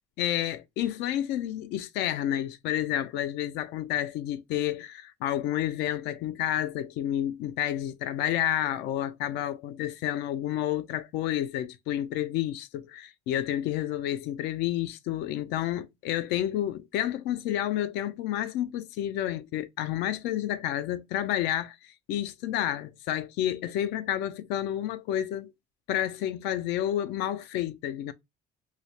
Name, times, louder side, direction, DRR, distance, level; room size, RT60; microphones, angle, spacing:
voice 1, 0.2-25.5 25.9-28.1, left 12 dB, 85° left, 0.4 m, -30 dB
4.8 x 2.0 x 2.7 m
cardioid pair, 110°, 17 cm